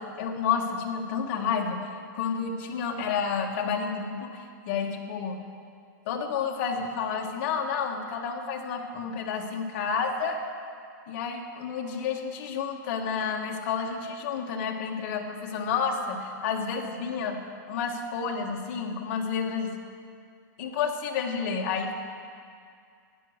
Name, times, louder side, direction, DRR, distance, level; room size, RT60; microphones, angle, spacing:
voice 1, 0.0-1.8 2.1-5.4 6.1-10.4 11.1-17.4 17.7-19.7 20.6-21.9, left 6 dB, 40° left, 2 dB, 1.4 m, -30 dB
13.0 x 9.8 x 6.4 m, 2.3 s
supercardioid pair, 175°, 11 cm